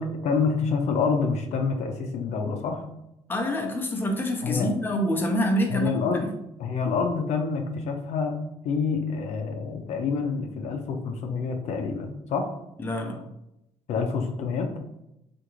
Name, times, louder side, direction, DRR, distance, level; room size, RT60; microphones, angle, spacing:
voice 1, 0.0-2.8 4.4-4.7 5.7-6.2 6.6-8.4 8.6-12.5 13.9-14.7, left 5 dB, 70° left, 4 dB, 0.5 m, -27 dB
voice 2, 3.3-6.3 12.8-13.3, equal, 15° left, 2 dB, 0.5 m, -26 dB
3.7 x 2.5 x 3.0 m, 0.84 s
cardioid pair, 125°, 12 cm